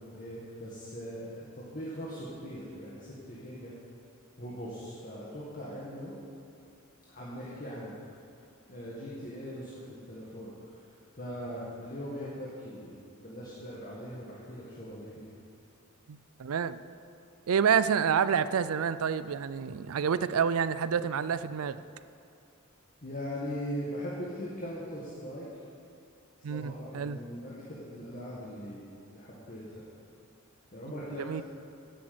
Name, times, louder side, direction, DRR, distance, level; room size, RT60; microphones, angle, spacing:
voice 1, 0.0-3.7 4.4-6.1 7.1-7.9 8.7-10.5 11.2-15.3 23.0-25.5 26.5-29.9 30.7-31.4, equal, 40° left, -7 dB, 1.9 m, -40 dB
voice 2, 16.1-16.8 17.5-21.8 26.4-27.2 31.3-31.4, right 7 dB, 85° right, 14 dB, 0.4 m, -28 dB
10.5 x 8.3 x 7.9 m, 2.5 s
head